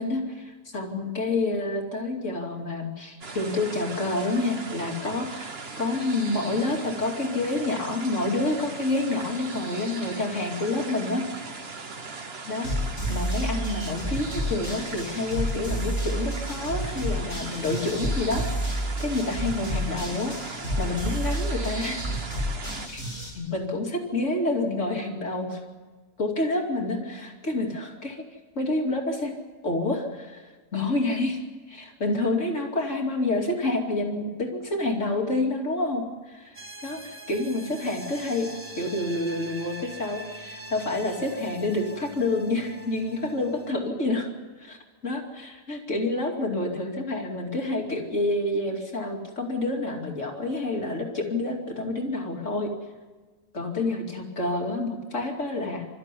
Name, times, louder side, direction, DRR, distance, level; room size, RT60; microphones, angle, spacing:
voice 1, 0.0-11.2 12.5-22.1 22.9-23.0 23.3-25.6 26.2-28.2 28.6-29.3 29.6-30.5 30.7-31.4 31.7-38.5 38.7-44.3 44.6-44.8 45.0-52.7 53.5-55.9, left 2 dB, 75° left, 0 dB, 3.0 m, -28 dB
sound 1, 3.2-22.9, right 4 dB, 55° right, 1.6 m, -39 dB
sound 2, 12.6-23.3, equal, 45° left, 8.1 m, -30 dB
sound 3, 36.5-43.7, right 1 dB, 30° right, 2.1 m, -43 dB
28.0 x 13.5 x 9.9 m, 1.3 s
omnidirectional pair, 1.3 m